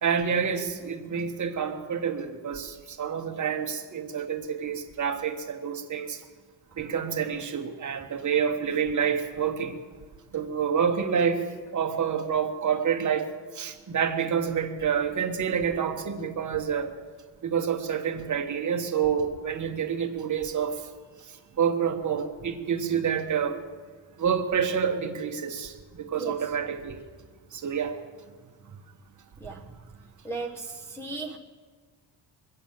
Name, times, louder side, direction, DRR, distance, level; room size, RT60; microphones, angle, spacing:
voice 1, 0.0-6.2 6.8-9.7 10.3-11.4 11.7-13.2 13.6-16.9 17.4-20.7 21.6-23.6 24.2-25.7 26.0-27.0 27.6-28.0, right 7 dB, 45° right, 5 dB, 1.3 m, -28 dB
voice 2, 30.2-31.4, right 3 dB, 5° left, -3 dB, 0.9 m, -36 dB
23.0 x 8.5 x 7.2 m, 1.5 s
wide cardioid pair, 150°, 43 cm